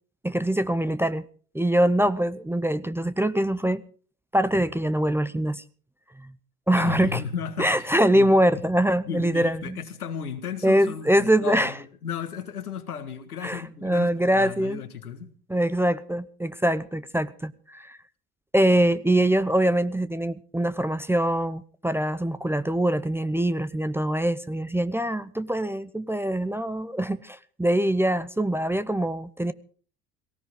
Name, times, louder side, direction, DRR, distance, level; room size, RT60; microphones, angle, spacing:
voice 1, 0.2-1.2 1.5-3.8 4.3-5.6 6.2-6.3 6.7-7.2 7.6-9.8 10.6-11.7 13.4-14.8 15.5-18.0 18.5-29.5, right 1 dB, 5° right, 0.7 m, -23 dB
voice 2, 6.8-8.3 9.1-15.3, left 7 dB, 80° left, 1.8 m, -34 dB
19.0 x 18.0 x 3.7 m
figure-of-eight pair, 65°, 44 cm